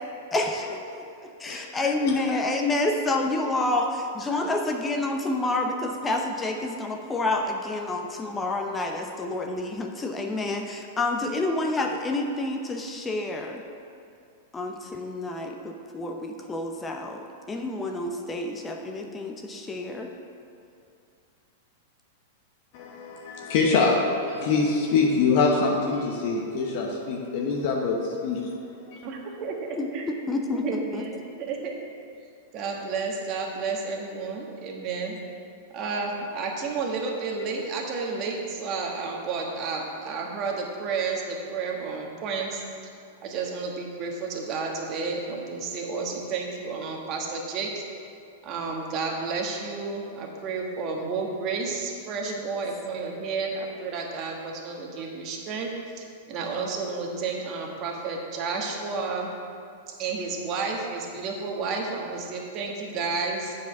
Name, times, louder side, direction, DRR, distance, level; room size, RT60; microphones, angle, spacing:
voice 1, 0.3-13.6 14.5-20.1 29.8-29.9 30.3-31.0, left 2 dB, 15° left, 3 dB, 0.7 m, -28 dB
voice 2, 22.7-28.5 28.9-29.0, left 4 dB, 55° left, -1 dB, 1.1 m, -24 dB
voice 3, 29.0-29.6 29.9-30.1 30.5-31.7 32.5-35.2 35.7-42.6 43.2-47.8 48.4-55.7 56.0-59.3 60.0-63.6, right 4 dB, 40° right, 0 dB, 1.5 m, -31 dB
8.0 x 4.9 x 6.0 m, 2.5 s
hypercardioid pair, 105°, 0 cm